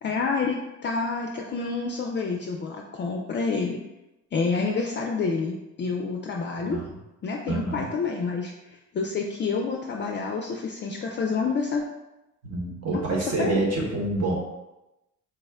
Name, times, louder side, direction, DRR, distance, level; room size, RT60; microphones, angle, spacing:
voice 1, 0.0-0.6 0.8-3.8 4.3-6.8 7.2-11.8 12.9-13.0 13.4-13.6, left 4 dB, 40° left, 1 dB, 0.4 m, -28 dB
voice 2, 6.5-7.0 7.5-7.9 12.4-14.3, right 2 dB, 55° right, -2 dB, 1.2 m, -27 dB
4.4 x 2.1 x 3.5 m, 0.97 s
cardioid pair, 90°, 30 cm